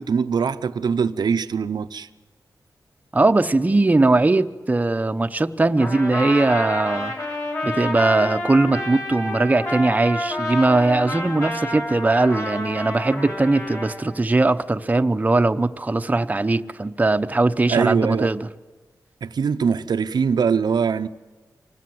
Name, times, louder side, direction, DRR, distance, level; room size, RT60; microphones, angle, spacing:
voice 1, 0.0-2.1 17.7-18.3 19.2-21.1, right 6 dB, 90° right, 0.7 m, -22 dB
voice 2, 3.1-7.1 7.6-18.5, right 2 dB, 20° right, 0.8 m, -20 dB
Trumpet, 5.8-14.0, left 1 dB, 45° left, 5.5 m, -29 dB
25.5 x 19.0 x 7.8 m
wide cardioid pair, 125°, 7 cm